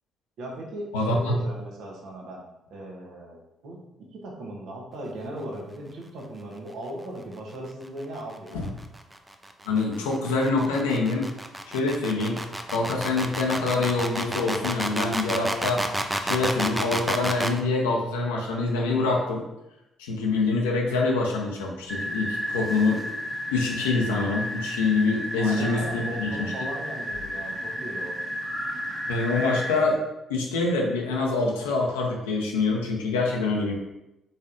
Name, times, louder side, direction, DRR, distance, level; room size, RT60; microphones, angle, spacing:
voice 1, 0.4-2.4 2.7-8.7 25.4-28.2, right 1 dB, 70° right, -1 dB, 0.9 m, -38 dB
voice 2, 0.9-1.3 8.5-8.7 9.6-11.3 11.7-12.4 12.7-15.8 16.2-19.4 20.0-23.0 23.5-26.5 29.1-30.0 30.3-33.8, left 3 dB, 85° left, -1 dB, 0.6 m, -25 dB
sound 1, 8.3-17.6, right 1 dB, 15° right, 0.5 m, -30 dB
sound 2, 21.9-29.8, equal, 35° right, 1.2 m, -32 dB
4.1 x 3.5 x 2.6 m, 0.91 s
hypercardioid pair, 45°, 0 cm